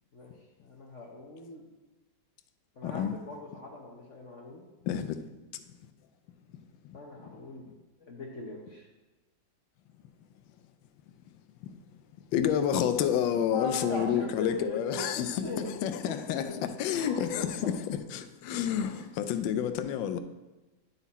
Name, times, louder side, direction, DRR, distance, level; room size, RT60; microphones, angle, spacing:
voice 1, 0.6-1.7 2.8-4.7 6.9-7.6 8.0-8.9 13.5-15.8 16.0-16.5 16.9-17.7 18.8-19.1, left 3 dB, 50° left, 1.0 m, -39 dB
voice 2, 2.8-3.1 4.8-5.3 5.5-5.6 6.8-7.0 12.3-20.2, left 9 dB, 90° left, 1.3 m, -29 dB
11.0 x 4.1 x 4.1 m
omnidirectional pair, 2.0 m